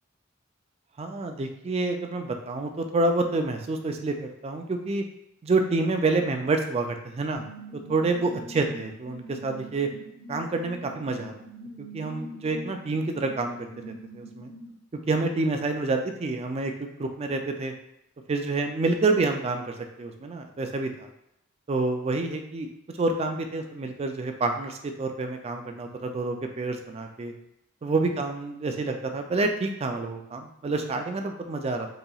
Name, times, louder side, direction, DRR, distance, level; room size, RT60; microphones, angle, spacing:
voice 1, 1.0-5.0 5.4-7.4 7.9-9.9 10.3-11.3 11.8-13.6 14.1-14.5 15.1-17.7 18.3-21.1 21.7-22.7 23.0-27.3 27.8-31.9, right 3 dB, 30° right, 5 dB, 0.3 m, -28 dB
sound 1, 7.3-14.7, equal, 55° left, 0.9 m, -43 dB
4.0 x 2.8 x 2.3 m, 0.80 s
head